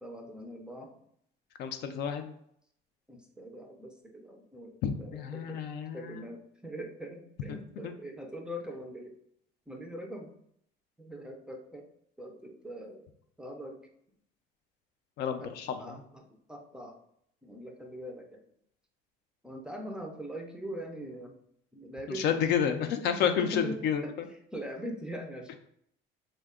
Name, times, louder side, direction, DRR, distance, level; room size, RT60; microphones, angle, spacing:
voice 1, 0.0-0.9 3.1-5.6 5.9-9.1 9.7-10.3 11.0-11.9 12.2-13.1 13.4-13.9 15.4-17.0 17.4-18.4 19.4-21.4 21.7-22.4 23.2-24.1 24.5-25.6, equal, 5° right, 2 dB, 0.4 m, -42 dB
voice 2, 1.6-2.3 4.8-6.2 7.5-7.6 7.8-7.9 15.2-16.0 22.1-24.3, left 8 dB, 60° left, 7 dB, 0.4 m, -30 dB
3.4 x 2.2 x 3.5 m, 0.70 s
cardioid pair, 135°, 19 cm